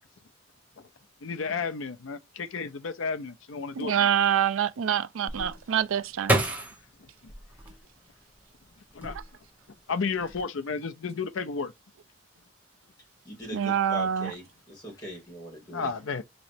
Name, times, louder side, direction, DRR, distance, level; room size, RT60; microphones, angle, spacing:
voice 1, 1.2-4.1 9.0-9.2 9.9-11.7 15.7-16.2, left 5 dB, 70° left, 0.5 m, -32 dB
voice 2, 3.8-6.4 9.1-9.2 13.5-14.3, right 9 dB, 75° right, 0.4 m, -26 dB
sound 1, 5.3-8.4 8.9-9.6 10.0-10.4, right 1 dB, 10° right, 1.1 m, -30 dB
voice 3, 13.2-15.9, right 1 dB, 20° left, 2.3 m, -41 dB
4.0 x 3.1 x 2.6 m
head